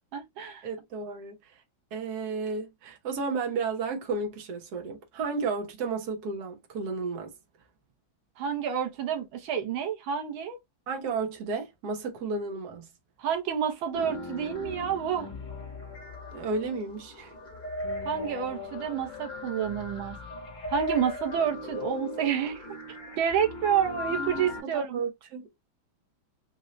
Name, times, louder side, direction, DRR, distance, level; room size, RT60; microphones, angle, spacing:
voice 1, 0.1-0.7 8.4-10.6 13.2-15.3 18.0-20.2 20.7-22.6 23.2-25.0, right 8 dB, 85° right, 1.7 m, -29 dB
voice 2, 0.6-1.5 1.9-7.3 10.9-12.9 16.3-17.3 24.1-24.5 24.7-25.5, right 4 dB, 55° right, 1.5 m, -33 dB
sound 1, 13.9-24.6, left 2 dB, 25° left, 1.3 m, -38 dB
4.1 x 2.6 x 3.1 m
omnidirectional pair, 2.1 m